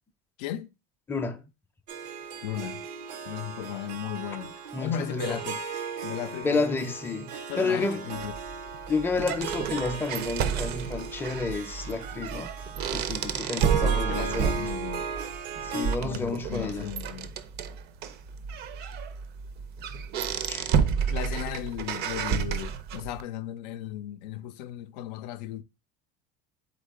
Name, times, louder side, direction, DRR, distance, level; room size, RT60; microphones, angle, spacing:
voice 1, 0.4-0.7 2.4-2.8 3.3-5.7 6.0-6.9 7.5-8.4 13.8-15.1 16.0-17.3 21.1-25.6, left 11 dB, 80° left, 0.4 m, -36 dB
voice 2, 1.1-1.4 4.7-5.4 6.4-8.1 8.9-12.5 12.9-14.5 15.6-16.9 20.5-20.7, left 3 dB, 10° left, 0.5 m, -30 dB
Harp, 1.9-16.0, right 6 dB, 90° right, 0.8 m, -37 dB
sound 1, 8.2-23.2, right 7 dB, 50° right, 0.5 m, -31 dB
3.7 x 3.7 x 3.5 m
supercardioid pair, 110°, 21 cm